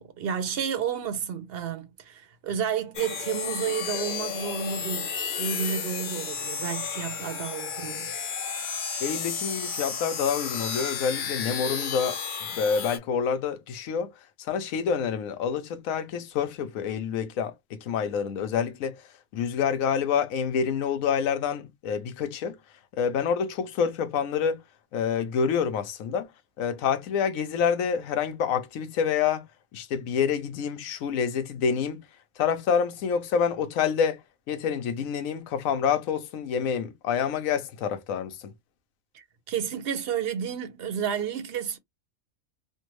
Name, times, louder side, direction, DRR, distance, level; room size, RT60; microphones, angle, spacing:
voice 1, 0.0-8.2 39.1-41.8, right 8 dB, 55° right, 0.7 m, -31 dB
sound 1, 2.9-13.0, left 6 dB, 55° left, 0.5 m, -32 dB
voice 2, 9.0-14.1 14.4-19.1 19.3-22.6 23.0-24.6 24.9-26.3 26.6-29.4 29.7-32.0 32.4-38.5, left 7 dB, 80° left, 1.1 m, -27 dB
3.4 x 2.1 x 3.0 m
omnidirectional pair, 1.4 m